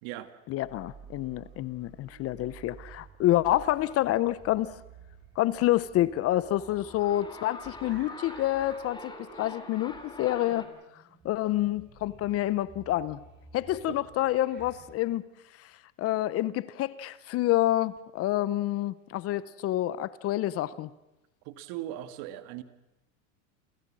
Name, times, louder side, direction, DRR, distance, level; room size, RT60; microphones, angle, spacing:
voice 1, 0.5-4.7 5.4-9.1 9.4-10.7 11.2-13.2 13.5-15.2 16.0-20.9, left 14 dB, 35° left, 0.7 m, -28 dB
sound 1, 0.6-14.9, right 5 dB, 25° right, 5.4 m, -53 dB
sound 2, 6.4-10.7, left 3 dB, 10° left, 2.9 m, -45 dB
voice 2, 21.5-22.6, right 13 dB, 60° right, 1.9 m, -38 dB
28.5 x 15.5 x 7.5 m
supercardioid pair, 130°, 39 cm